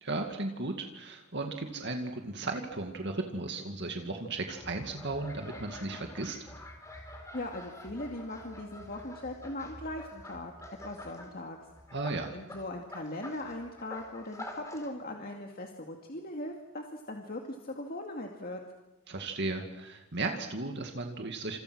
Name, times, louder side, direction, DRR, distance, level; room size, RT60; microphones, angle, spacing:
voice 1, 0.0-6.4 11.9-12.3 19.1-21.6, right 2 dB, 50° right, 3 dB, 2.2 m, -35 dB
sound 1, 4.5-11.3 11.7-14.9, left 1 dB, 15° left, 4.1 m, -47 dB
voice 2, 7.3-10.5 10.8-11.6 12.3-18.6, left 1 dB, 45° left, 2 dB, 2.3 m, -39 dB
30.0 x 27.5 x 6.3 m, 1.0 s
head